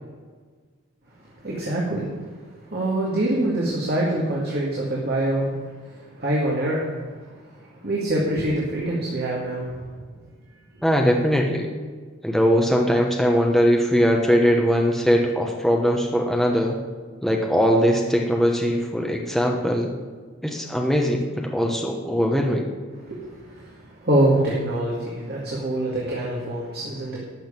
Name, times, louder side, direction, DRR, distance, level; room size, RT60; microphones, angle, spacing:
voice 1, 1.4-2.1 2.7-5.5 6.2-6.9 7.8-9.7 23.0-23.7 24.0-27.2, right 1 dB, 45° right, -4 dB, 2.1 m, -24 dB
voice 2, 10.8-11.7 12.2-16.8 17.2-19.9 20.4-22.7, equal, ahead, 1 dB, 1.0 m, -20 dB
12.0 x 6.3 x 8.9 m, 1.5 s
head